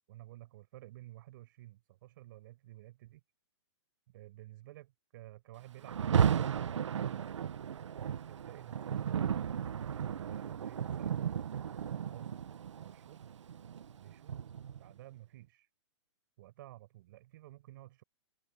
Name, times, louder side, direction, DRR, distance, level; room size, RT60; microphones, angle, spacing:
voice 1, 0.1-3.2 4.1-7.4 8.0-9.3 9.9-12.4 12.8-13.4 14.0-14.4 14.7-15.7 16.4-18.0, right 16 dB, 45° right, 6.1 m, -53 dB
Rain, 5.8-14.9, right 8 dB, 80° right, 1.3 m, -34 dB
hypercardioid pair, 150°, 15 cm